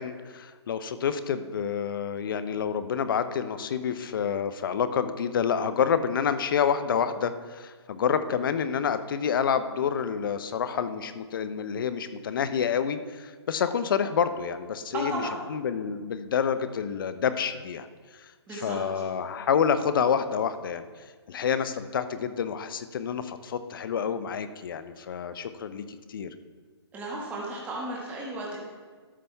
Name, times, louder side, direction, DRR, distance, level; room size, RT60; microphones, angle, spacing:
voice 1, 0.0-15.2 15.5-17.9 18.1-20.8 21.3-26.3, left 7 dB, 50° left, 12 dB, 0.6 m, -28 dB
voice 2, 14.9-15.3 18.5-18.8 26.9-28.7, right 2 dB, 10° right, -3 dB, 1.6 m, -34 dB
12.5 x 6.8 x 3.4 m, 1.5 s
hypercardioid pair, 150°, 15 cm